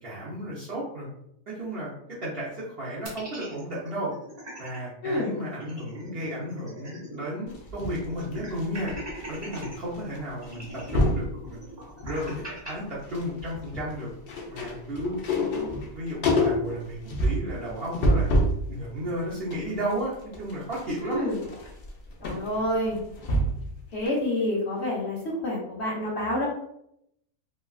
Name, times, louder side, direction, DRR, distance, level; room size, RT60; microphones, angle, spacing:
voice 1, 0.0-1.1 1.5-1.9 2.2-4.1 4.6-8.9 9.3-11.6 12.0-14.1 14.5-15.2 15.9-18.3 18.6-21.3, equal, 50° right, -8 dB, 0.8 m, -33 dB
sound 1, 3.0-4.8 5.1-5.2 5.5-7.3 7.6-7.7 8.2-9.8 10.4-12.7, right 1 dB, 25° right, 0.7 m, -41 dB
voice 2, 5.0-5.3 15.3-15.8 21.0-21.4 22.2-23.0 23.9-26.5, left 1 dB, 50° left, -6 dB, 1.1 m, -28 dB
sound 2, 7.5-9.6 9.9-10.2 10.5-11.3 11.8-12.5 12.8-18.6 19.1-23.7 24.1-24.2, equal, 75° left, 0.5 m, -28 dB
3.1 x 2.3 x 2.3 m, 0.76 s
omnidirectional pair, 1.6 m